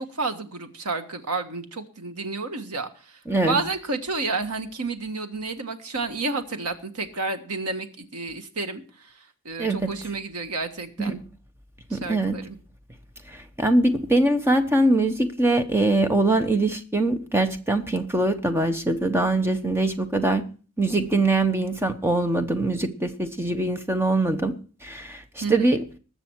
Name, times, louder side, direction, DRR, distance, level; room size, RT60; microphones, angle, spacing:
voice 1, 0.0-2.9 3.4-9.1 9.4-11.2 11.9-12.6 25.4-25.7, right 3 dB, 90° right, 8 dB, 1.5 m, -30 dB
voice 2, 3.3-3.6 9.6-9.9 11.0-11.1 11.9-12.4 13.3-20.4 20.8-24.5 24.8-25.8, right 2 dB, 10° right, 8 dB, 0.9 m, -23 dB
20.0 x 7.0 x 4.5 m, 0.38 s
head